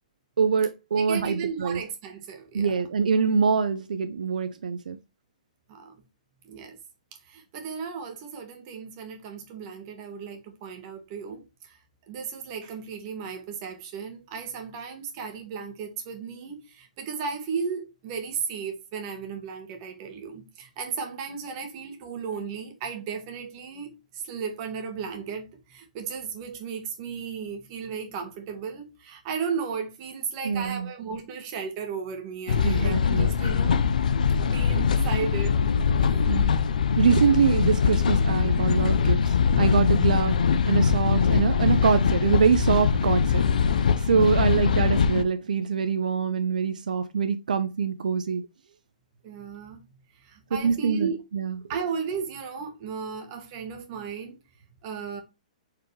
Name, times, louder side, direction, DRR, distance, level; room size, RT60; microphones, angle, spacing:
voice 1, 0.4-1.8 2.5-5.0 30.4-30.9 32.6-33.7 36.3-36.5 37.0-40.4 40.7-43.4 44.0-48.4 50.6-51.6, right 6 dB, 85° right, 0.5 m, -24 dB
voice 2, 1.0-2.7 5.7-5.9 6.4-6.8 7.3-11.8 12.1-33.8 34.4-35.7 36.0-36.3 44.2-44.5 49.2-49.8 50.2-51.2 51.7-54.4 54.8-55.2, right 6 dB, 35° right, 1.4 m, -35 dB
sound 1, 32.5-45.2, left 6 dB, 75° left, 0.5 m, -22 dB
4.6 x 3.6 x 3.2 m
hypercardioid pair, 145°, 4 cm